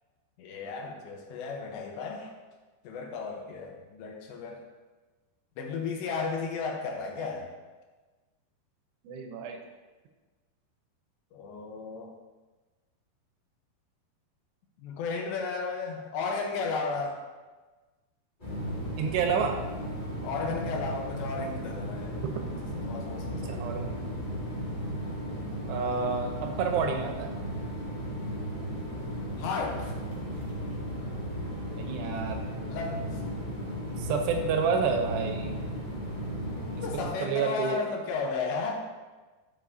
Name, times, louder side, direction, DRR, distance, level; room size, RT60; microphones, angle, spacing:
voice 1, 0.4-2.3 2.8-4.6 5.6-7.5 11.3-12.1 14.8-17.2 20.2-22.2 22.8-23.7 29.4-29.9 32.7-33.2 36.8-38.7, left 4 dB, 80° left, 1 dB, 3.1 m, -34 dB
voice 2, 9.0-9.6 19.0-19.6 23.4-24.1 25.7-27.3 31.8-32.4 34.0-35.6 36.8-37.8, right 5 dB, 80° right, 3 dB, 2.8 m, -29 dB
sound 1, 18.4-37.0, equal, 35° left, 0.8 m, -35 dB
11.5 x 7.5 x 2.7 m, 1.3 s
omnidirectional pair, 5.0 m